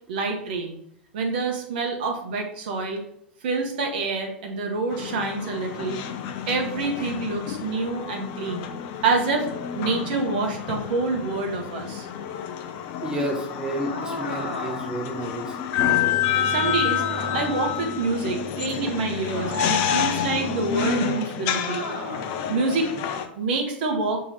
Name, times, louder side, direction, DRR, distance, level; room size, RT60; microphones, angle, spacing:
voice 1, 0.1-0.8 1.1-3.0 3.4-6.0 6.5-8.7 9.0-9.5 9.7-12.1 16.4-17.0 17.3-21.8 22.5-22.9 23.3-24.2, right 3 dB, 55° right, 2 dB, 1.4 m, -27 dB
sound 1, 4.9-23.3, left 8 dB, 45° left, 0.7 m, -29 dB
voice 2, 13.0-15.6, right 1 dB, 15° right, 1 dB, 1.3 m, -30 dB
sound 2, 13.8-15.1 16.9-17.7 19.3-19.9 21.6-22.4, left 2 dB, 70° left, 1.4 m, -34 dB
6.3 x 3.8 x 4.4 m, 0.71 s
figure-of-eight pair, 85°, 6 cm